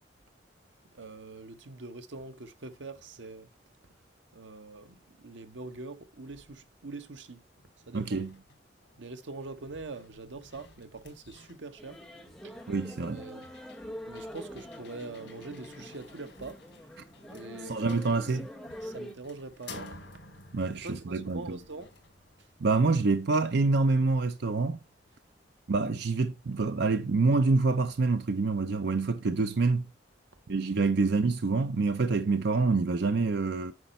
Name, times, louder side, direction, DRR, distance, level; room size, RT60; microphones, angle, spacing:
voice 1, 0.9-3.5 3.9-4.0 4.3-7.4 7.7-8.2 9.0-12.0 12.4-12.6 13.0-13.5 14.0-16.6 17.3-18.0 18.3-18.4 18.8-20.1 20.7-22.0 22.4-22.5, right 3 dB, 85° right, 1.1 m, -44 dB
sound 1, 7.1-7.2 7.6-25.5, left 3 dB, 75° left, 3.0 m, -54 dB
voice 2, 7.9-8.3 12.7-13.2 17.7-18.5 20.5-21.6 22.6-24.8 25.7-29.8 30.5-33.7, right 3 dB, 65° right, 0.6 m, -26 dB
sound 2, 11.8-19.1, equal, 5° left, 1.2 m, -45 dB
9.6 x 5.4 x 4.2 m
head